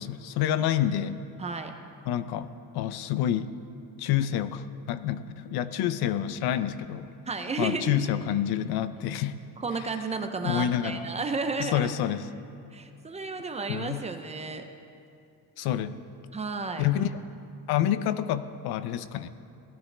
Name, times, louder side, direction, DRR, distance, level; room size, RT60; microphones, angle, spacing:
voice 1, 0.0-1.2 2.1-3.5 4.0-7.1 7.6-9.4 10.4-11.1 11.6-12.3 13.7-14.0 15.6-16.0 16.8-17.1 17.7-19.3, left 11 dB, 85° left, 13 dB, 0.6 m, -28 dB
voice 2, 1.4-1.7 7.3-8.1 9.6-11.9 12.7-14.7 16.3-16.9, right 4 dB, 20° right, 6 dB, 0.5 m, -32 dB
17.0 x 12.0 x 3.3 m, 2.5 s
cardioid pair, 160°, 37 cm